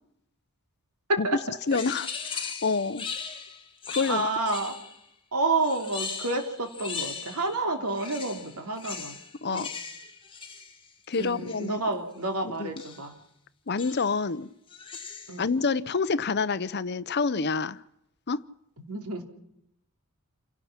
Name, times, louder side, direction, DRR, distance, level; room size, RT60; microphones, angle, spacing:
voice 1, 1.7-3.1 3.9-4.3 9.4-9.7 11.1-11.8 12.6-12.7 13.7-14.5 15.4-17.8 18.3-18.4, left 4 dB, 50° left, 16 dB, 0.7 m, -27 dB
sound 1, 1.7-5.1 5.6-7.6 7.9-11.7 12.8-13.1 13.8-14.2 14.7-15.5, left 5 dB, 25° left, 2.2 m, -39 dB
voice 2, 4.1-4.8 5.3-9.2 9.5-9.7 11.1-13.1 15.3-15.5 18.9-19.2, right 2 dB, 85° right, 4 dB, 3.2 m, -29 dB
28.5 x 17.5 x 5.9 m, 0.79 s
head